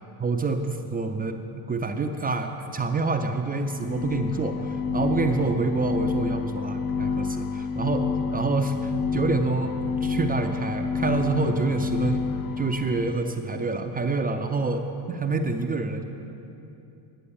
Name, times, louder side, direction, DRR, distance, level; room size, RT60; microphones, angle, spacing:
voice 1, 0.2-1.3 1.7-8.1 8.3-9.7 10.0-12.2 12.6-16.0, right 3 dB, 20° right, 5 dB, 0.4 m, -27 dB
sound 1, 3.6-13.3, left 5 dB, 45° left, 0.6 m, -29 dB
10.0 x 7.7 x 6.9 m, 2.8 s
cardioid pair, 110°, 50 cm